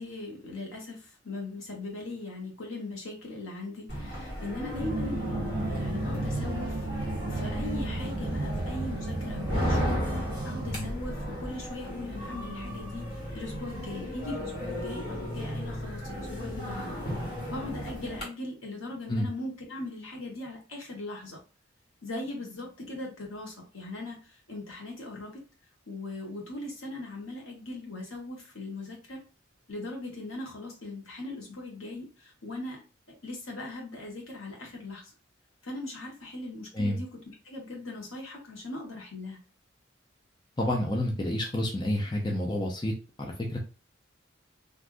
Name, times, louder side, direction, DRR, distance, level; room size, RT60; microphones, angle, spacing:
voice 1, 0.0-6.9 7.2-10.1 10.4-16.9 17.5-21.4 22.0-24.2 24.5-25.4 25.9-29.2 29.7-32.8 33.2-35.0 35.6-37.2 37.4-39.4, left 2 dB, 80° left, 0 dB, 1.3 m, -39 dB
sound 1, 3.9-18.2, equal, 55° left, 1.5 m, -35 dB
sound 2, 4.7-10.9, right 2 dB, 60° right, 0.7 m, -33 dB
voice 2, 40.6-42.9 43.2-43.6, left 1 dB, 20° left, 0 dB, 0.5 m, -29 dB
3.4 x 2.6 x 2.5 m, 0.34 s
head